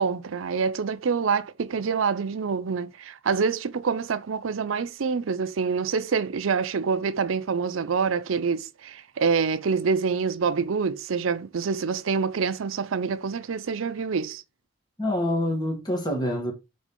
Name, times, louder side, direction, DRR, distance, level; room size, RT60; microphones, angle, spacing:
voice 1, 0.0-14.4, right 5 dB, 85° right, 0.5 m, -26 dB
voice 2, 15.0-16.5, left 1 dB, 20° left, 1.9 m, -26 dB
5.2 x 3.8 x 5.2 m
head